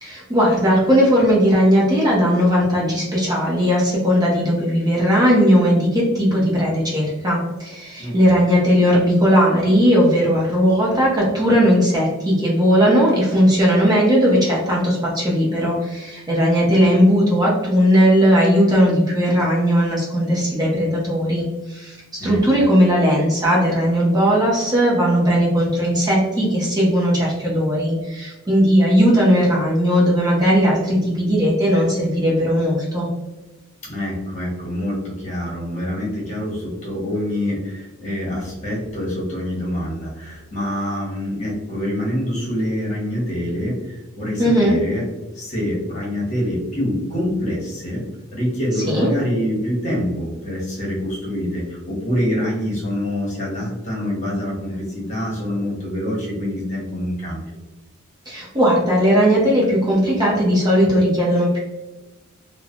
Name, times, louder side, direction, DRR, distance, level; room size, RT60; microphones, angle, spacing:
voice 1, 0.0-33.1 44.4-44.8 48.9-49.1 58.3-61.6, equal, 20° right, -5 dB, 0.7 m, -17 dB
voice 2, 8.0-8.4 16.8-16.9 22.2-22.4 33.8-45.1 45.3-48.0 48.3-57.5, equal, 35° left, -5 dB, 1.0 m, -25 dB
3.1 x 2.0 x 2.4 m, 1.1 s
head